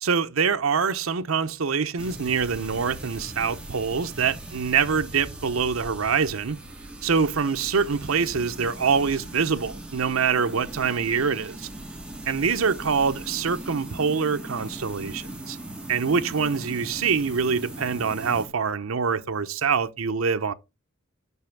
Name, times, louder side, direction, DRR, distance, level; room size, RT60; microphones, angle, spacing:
voice 1, 0.0-6.6 7.0-11.7 12.3-15.6 15.9-20.5, right 5 dB, 90° right, 0.7 m, -25 dB
sound 1, 2.0-18.5, right 1 dB, 5° right, 1.7 m, -39 dB
6.1 x 5.5 x 5.8 m
head